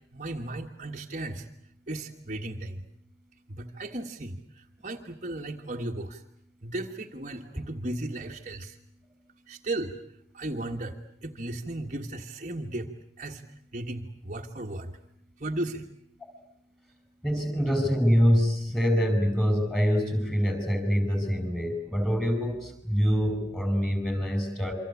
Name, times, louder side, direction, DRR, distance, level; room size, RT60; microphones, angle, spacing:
voice 1, 0.1-1.5 1.9-2.8 3.5-6.2 6.6-8.8 9.5-9.9 10.3-12.9 13.2-13.4 13.7-14.9 15.4-15.8, right 1 dB, 40° right, 2 dB, 1.6 m, -35 dB
voice 2, 17.2-24.7, equal, 5° left, 7 dB, 5.4 m, -25 dB
28.0 x 25.0 x 8.4 m, 0.70 s
head